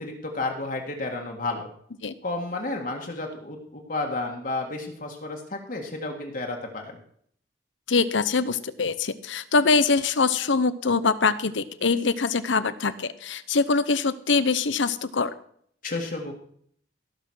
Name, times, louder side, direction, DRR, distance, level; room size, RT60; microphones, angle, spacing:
voice 1, 0.0-1.7 2.2-7.0 15.8-16.3, left 2 dB, 45° left, 1 dB, 1.9 m, -31 dB
voice 2, 7.9-15.3, left 4 dB, 80° left, 14 dB, 0.8 m, -23 dB
17.5 x 6.2 x 6.4 m, 0.62 s
head